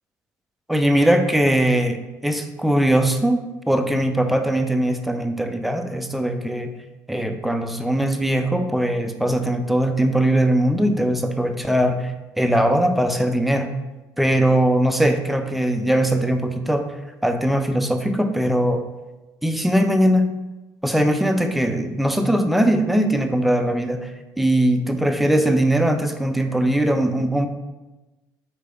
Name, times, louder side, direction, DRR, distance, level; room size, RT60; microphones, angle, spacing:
voice 1, 0.7-6.7 7.1-13.7 14.2-16.9 17.2-18.8 19.4-20.3 20.8-24.1 24.4-27.5, right 1 dB, ahead, 6 dB, 0.5 m, -20 dB
4.3 x 3.3 x 3.5 m, 1.1 s
hypercardioid pair, 70°, 9 cm